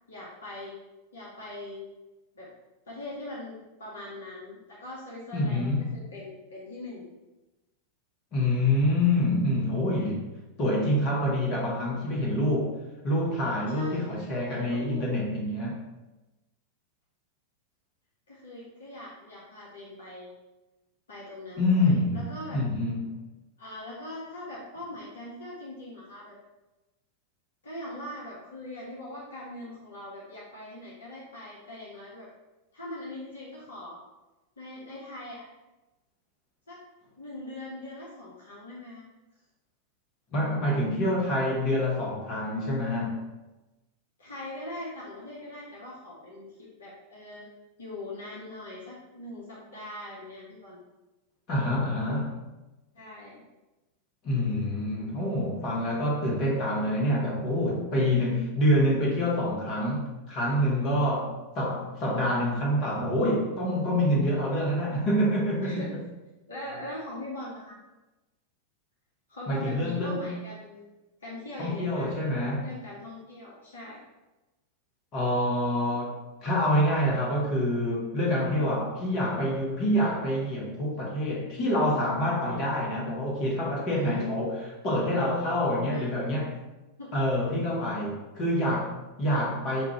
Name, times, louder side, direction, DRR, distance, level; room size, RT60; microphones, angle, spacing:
voice 1, 0.1-0.8 1.1-1.9 2.3-2.5 2.9-7.1 13.7-15.1 18.3-20.3 21.1-22.6 23.6-26.4 27.6-32.3 32.7-34.0 34.6-35.5 36.7-36.8 37.2-39.0 44.2-47.4 47.8-50.8 52.9-53.4 65.6-65.9 66.5-67.8 69.3-70.9 71.2-74.0 83.9-84.3 85.9-86.1 87.0-87.1, left 1 dB, 65° left, -5 dB, 0.8 m, -41 dB
voice 2, 5.3-6.0 8.3-10.3 10.6-12.7 13.0-15.8 21.6-23.2 40.3-43.2 51.5-52.4 54.2-65.9 69.5-70.3 71.6-72.7 75.1-86.6 87.1-89.8, left 1 dB, 35° left, -3 dB, 1.1 m, -26 dB
5.2 x 2.4 x 2.9 m, 1.1 s
figure-of-eight pair, 90°, 0 cm